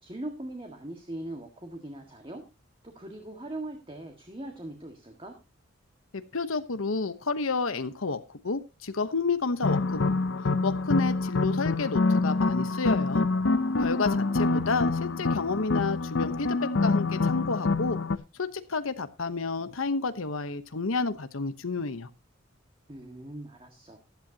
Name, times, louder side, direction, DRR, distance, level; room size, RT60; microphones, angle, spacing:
voice 1, 0.0-2.4 2.8-5.4 13.9-14.7 22.9-24.0, right 1 dB, 25° right, 3 dB, 1.8 m, -41 dB
voice 2, 6.1-10.2 10.6-13.3 13.8-18.0 18.4-22.1, left 4 dB, 85° left, 11 dB, 1.0 m, -30 dB
sound 1, 9.6-18.2, left 3 dB, 60° left, 0.6 m, -26 dB
15.0 x 11.5 x 2.9 m, 0.27 s
head